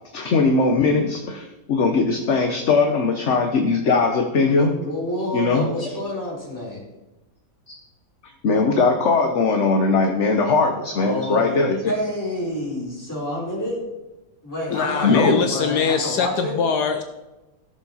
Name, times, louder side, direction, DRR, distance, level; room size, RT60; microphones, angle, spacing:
voice 1, 0.1-4.7 5.3-5.9 7.7-7.8 8.4-11.8 15.0-15.4, left 4 dB, 50° left, 3 dB, 1.1 m, -20 dB
voice 2, 4.4-6.8 10.9-13.8 14.4-16.6, left 1 dB, 10° left, -6 dB, 3.8 m, -28 dB
voice 3, 14.7-17.0, left 6 dB, 75° left, 6 dB, 1.3 m, -23 dB
14.5 x 7.0 x 4.2 m, 1.0 s
omnidirectional pair, 1.8 m